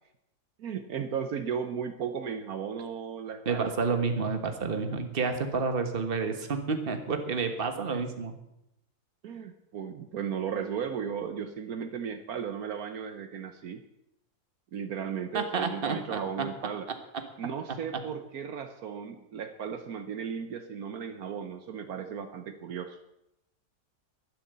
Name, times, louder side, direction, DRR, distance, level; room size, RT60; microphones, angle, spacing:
voice 1, 0.6-3.7 7.8-8.0 9.2-13.8 14.7-16.9 17.4-23.0, right 7 dB, 70° right, 7 dB, 1.3 m, -35 dB
voice 2, 3.4-8.3 15.3-16.5, right 4 dB, 35° right, 7 dB, 1.5 m, -30 dB
11.5 x 11.5 x 6.8 m, 0.85 s
omnidirectional pair, 1.7 m